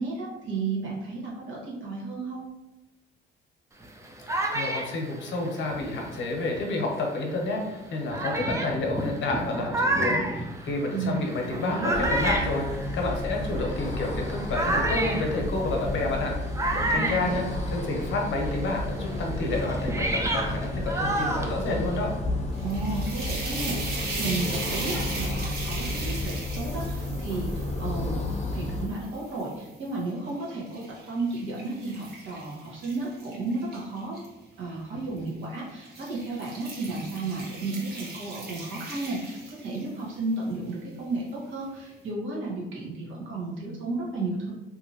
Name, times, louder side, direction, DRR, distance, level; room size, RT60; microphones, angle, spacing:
voice 1, 0.0-2.4 10.9-12.0 16.8-17.4 22.6-28.2 28.5-34.2 34.6-44.5, right 3 dB, 75° right, -4 dB, 1.2 m, -33 dB
sound 1, 3.8-6.8 7.5-7.6 8.1-18.1 18.4-22.2, right 1 dB, 15° right, 0.4 m, -31 dB
voice 2, 4.5-12.7 12.9-16.3 16.7-17.4 17.7-22.1, left 2 dB, 70° left, 1 dB, 0.8 m, -29 dB
sound 2, 11.9-28.9, left 1 dB, 35° left, 0.6 m, -32 dB
sound 3, 22.5-29.7 30.3-34.3 35.2-35.4 35.8-40.0, right 2 dB, 55° right, 1.0 m, -38 dB
2.8 x 2.5 x 2.7 m, 0.99 s
cardioid pair, 90°, 20 cm